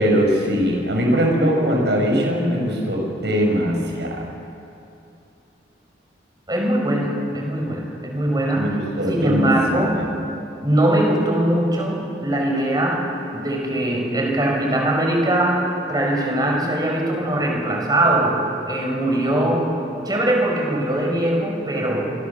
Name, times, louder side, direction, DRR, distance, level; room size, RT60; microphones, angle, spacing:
voice 1, 0.0-4.2 8.6-10.1, equal, 75° right, 1 dB, 7.0 m, -21 dB
voice 2, 6.5-8.7 9.1-10.0 10.6-19.8 20.1-22.1, right 1 dB, 20° right, 0 dB, 5.7 m, -21 dB
28.5 x 25.0 x 7.2 m, 2.7 s
head